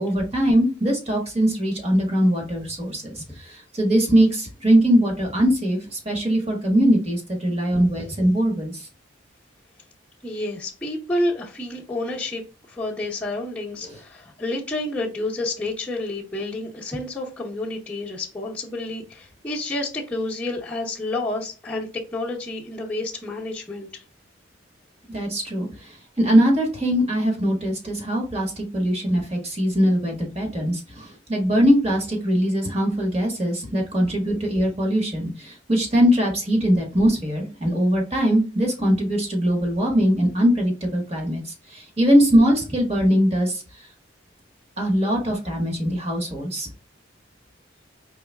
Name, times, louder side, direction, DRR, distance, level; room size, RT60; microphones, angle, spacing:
voice 1, 0.0-8.9 13.8-14.0 25.1-43.6 44.8-46.7, equal, 35° right, 1 dB, 1.3 m, -21 dB
voice 2, 10.2-12.4 12.7-24.0, left 2 dB, 5° left, -8 dB, 0.8 m, -29 dB
4.7 x 3.4 x 2.2 m, 0.33 s
head